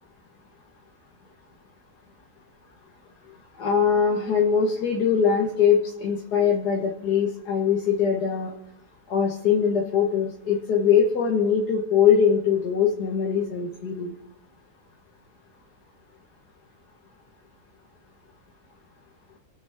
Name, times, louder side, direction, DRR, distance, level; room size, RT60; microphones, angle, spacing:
voice 1, 3.6-8.6 9.1-14.1, left 7 dB, 85° left, 0 dB, 2.0 m, -22 dB
27.0 x 9.6 x 3.5 m, 0.83 s
omnidirectional pair, 1.7 m